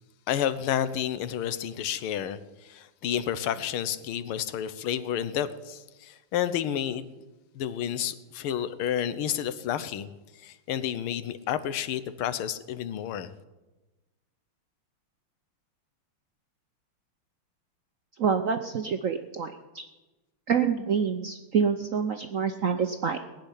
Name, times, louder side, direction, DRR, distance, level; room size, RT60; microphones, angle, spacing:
voice 1, 0.3-7.1 7.6-10.1 10.4-13.3, left 10 dB, 75° left, 14 dB, 1.7 m, -30 dB
voice 2, 18.2-19.9 20.5-23.3, right 6 dB, 75° right, 6 dB, 0.7 m, -27 dB
19.5 x 6.6 x 9.9 m, 1.1 s
omnidirectional pair, 2.4 m